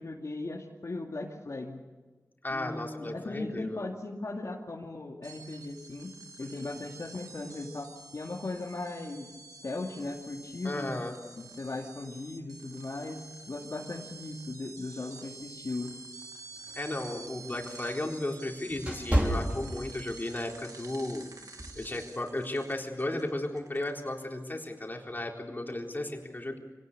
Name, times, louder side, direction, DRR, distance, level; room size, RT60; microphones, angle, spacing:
voice 1, 0.0-1.8 2.5-6.1 6.4-9.4 9.6-10.9 11.4-13.2 13.5-15.9, left 2 dB, 60° left, -1 dB, 2.4 m, -38 dB
voice 2, 2.4-3.8 10.6-11.1 16.7-21.3 21.7-26.6, left 1 dB, 30° left, 1 dB, 3.9 m, -34 dB
sound 1, 5.2-24.4, right 3 dB, 80° right, 2.5 m, -49 dB
sound 2, 16.6-20.3 20.7-21.0 21.6-21.9, right 1 dB, 25° right, 4.8 m, -31 dB
24.5 x 18.5 x 6.8 m, 1.3 s
wide cardioid pair, 65°, 6 cm